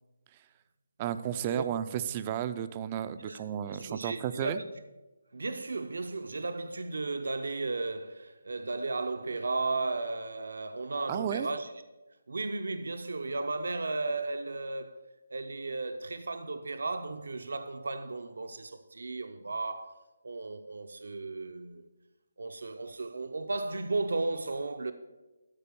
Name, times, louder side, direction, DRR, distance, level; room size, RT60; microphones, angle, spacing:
voice 1, 1.0-4.6 11.1-11.5, right 10 dB, 20° right, 0.4 m, -33 dB
voice 2, 3.7-4.6 5.3-11.7 12.3-21.9 22.4-24.9, right 3 dB, 75° right, 0.7 m, -35 dB
13.0 x 4.9 x 6.9 m
hypercardioid pair, 165°, 0 cm